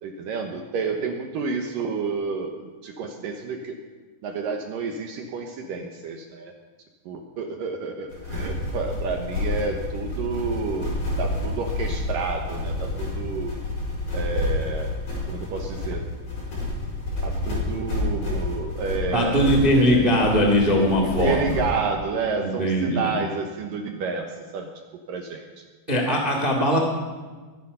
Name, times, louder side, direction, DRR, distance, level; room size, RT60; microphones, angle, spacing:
voice 1, 0.0-3.8 4.2-6.5 7.1-10.9 11.2-13.6 14.1-14.9 15.3-16.1 17.2-20.4 21.0-24.7 25.1-25.6, right 4 dB, 75° right, 3 dB, 2.1 m, -30 dB
sound 1, 8.1-21.8, left 2 dB, 40° left, 6.5 m, -29 dB
voice 2, 19.1-21.4 22.4-23.1 25.9-26.8, equal, 50° right, 1 dB, 0.6 m, -20 dB
22.5 x 10.5 x 5.5 m, 1.4 s
omnidirectional pair, 5.3 m